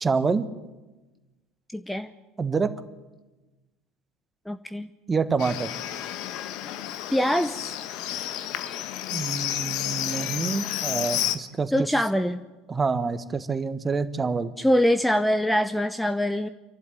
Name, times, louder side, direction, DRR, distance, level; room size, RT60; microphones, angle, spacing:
voice 1, 0.0-0.4 2.4-2.7 5.1-5.7 9.1-11.7 12.7-14.5, right 4 dB, 20° right, 12 dB, 1.4 m, -27 dB
voice 2, 1.7-2.1 4.5-4.9 7.1-7.6 11.7-12.4 14.6-16.5, equal, 5° left, 10 dB, 0.8 m, -23 dB
Livestock farm animals working animals, 5.4-11.4, left 12 dB, 55° left, 1.3 m, -31 dB
27.5 x 12.0 x 9.2 m, 1.1 s
figure-of-eight pair, 70°, 0 cm